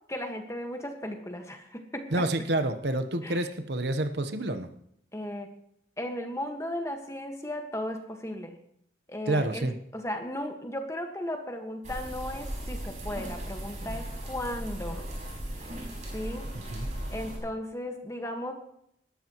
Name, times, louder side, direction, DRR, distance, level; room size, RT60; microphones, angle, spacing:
voice 1, 0.1-2.3 3.2-3.4 5.1-5.5 6.0-8.6 9.1-9.7 9.9-15.0 15.5-15.7 16.1-16.5 17.1-18.5, left 1 dB, 15° left, 4 dB, 1.5 m, -36 dB
voice 2, 2.1-4.7 9.3-9.7 16.7-16.9, right 1 dB, 70° right, 9 dB, 1.0 m, -28 dB
sound 1, 11.8-17.4, right 1 dB, 40° right, 5.5 m, -37 dB
19.5 x 13.0 x 3.1 m, 0.72 s
head